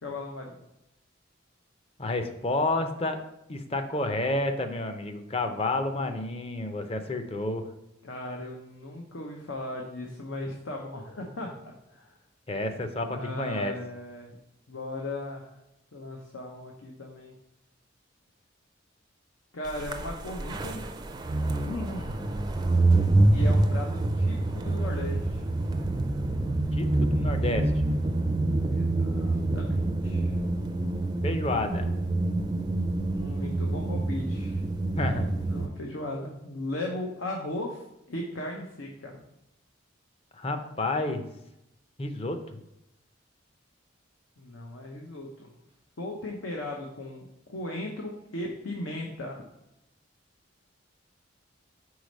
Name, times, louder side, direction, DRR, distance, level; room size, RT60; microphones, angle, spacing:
voice 1, 0.0-0.6 8.0-12.2 13.1-14.4 14.7-15.6 15.9-17.3 19.5-20.9 21.6-22.3 23.3-25.4 28.7-30.3 33.0-34.6 35.4-39.2 44.4-45.5 46.0-49.4, left 1 dB, 90° left, 0 dB, 0.8 m, -37 dB
voice 2, 2.0-3.2 3.5-7.7 12.5-13.7 26.7-27.9 31.2-31.9 35.0-35.3 40.3-41.2 42.0-42.6, left 2 dB, 30° left, 7 dB, 0.5 m, -30 dB
sound 1, 19.8-35.7, right 2 dB, 20° right, 0.4 m, -26 dB
4.8 x 4.1 x 5.3 m, 0.88 s
head